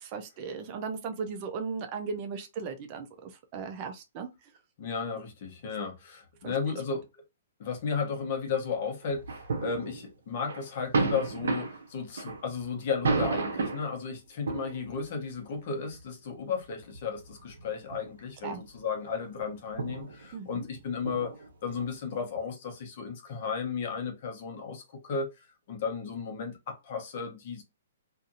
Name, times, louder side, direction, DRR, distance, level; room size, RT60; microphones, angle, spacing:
voice 1, 0.0-4.3 6.4-6.8 18.4-18.6 20.3-20.7, right 5 dB, 35° right, 0.5 m, -37 dB
voice 2, 4.8-7.0 7.6-21.3 21.6-25.3 25.7-27.6, left 5 dB, 50° left, 0.9 m, -34 dB
sound 1, 9.0-10.1 10.5-14.0 14.5-15.1 15.9-16.0 16.8-18.0 18.4-18.8 19.1-19.2 19.7-22.1, right 4 dB, 85° right, 0.7 m, -32 dB
2.6 x 2.5 x 2.6 m
hypercardioid pair, 155°, 0 cm